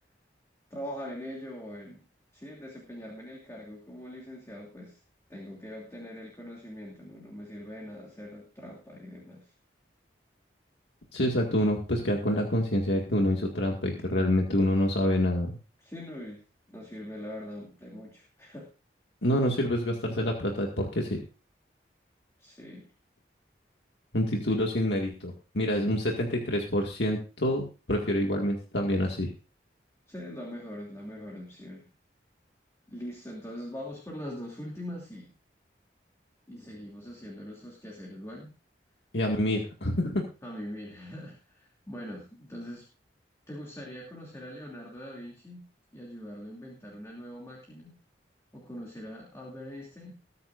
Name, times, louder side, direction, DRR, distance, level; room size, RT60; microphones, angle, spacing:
voice 1, 0.7-2.0 2.3-5.0 5.3-9.5 15.8-16.4 16.7-18.7 22.4-22.9 30.1-31.9 32.9-35.3 36.5-38.5 40.4-42.8 43.5-45.7 45.9-48.0 48.5-50.1, equal, 15° left, -2 dB, 2.7 m, -42 dB
voice 2, 11.1-15.5 19.2-21.2 24.1-29.3 39.1-40.2, left 1 dB, 75° left, 0 dB, 2.0 m, -27 dB
21.0 x 9.5 x 2.6 m, 0.34 s
head